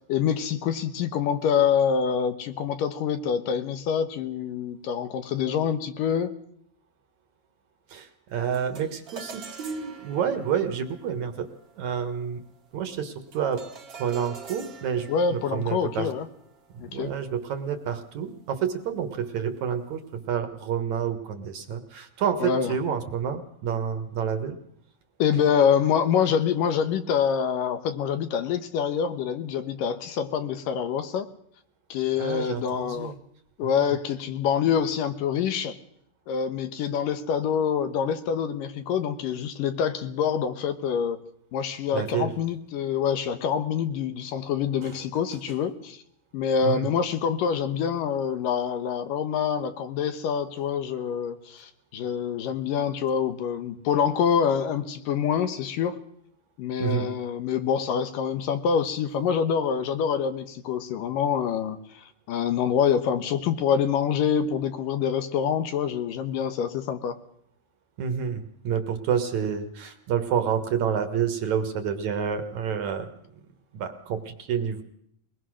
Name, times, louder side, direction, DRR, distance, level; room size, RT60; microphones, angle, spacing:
voice 1, 0.1-6.3 15.1-16.3 16.8-17.1 22.4-22.7 25.2-31.3 31.9-33.1 33.6-35.8 36.3-41.2 41.5-46.0 46.3-56.0 56.6-67.2, left 7 dB, 70° left, 9 dB, 2.7 m, -26 dB
voice 2, 7.9-11.5 11.8-12.4 12.7-13.6 14.0-16.1 16.7-24.6 32.2-33.1 33.6-34.0 41.9-42.3 44.8-45.0 46.6-46.9 56.8-57.1 68.0-73.1 73.7-74.8, right 7 dB, 60° right, 8 dB, 2.5 m, -29 dB
sound 1, 8.5-18.0, right 5 dB, 40° right, 1.3 m, -47 dB
22.0 x 20.5 x 6.4 m, 0.70 s
omnidirectional pair, 4.2 m